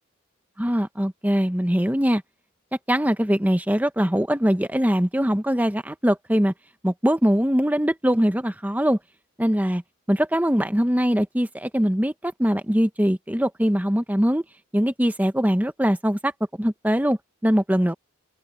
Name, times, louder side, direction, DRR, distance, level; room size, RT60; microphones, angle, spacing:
voice 1, 0.6-2.2 2.9-6.5 6.8-9.0 9.4-9.8 10.1-14.4 14.7-16.3 16.6-17.9, equal, 10° right, 1.0 m, -22 dB
head